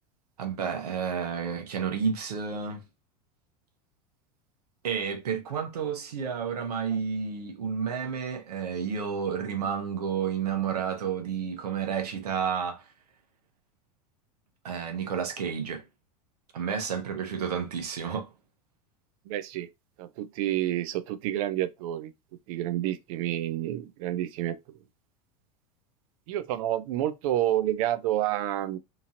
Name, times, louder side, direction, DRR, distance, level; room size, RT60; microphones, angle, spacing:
voice 1, 0.4-2.8 4.8-12.8 14.6-15.9 16.5-18.3, right 7 dB, 85° right, 1.0 m, -31 dB
voice 2, 19.3-19.7 20.0-22.1 22.5-24.6 26.3-28.8, right 13 dB, 65° right, 0.5 m, -29 dB
2.9 x 2.7 x 2.5 m
hypercardioid pair, 100°, 19 cm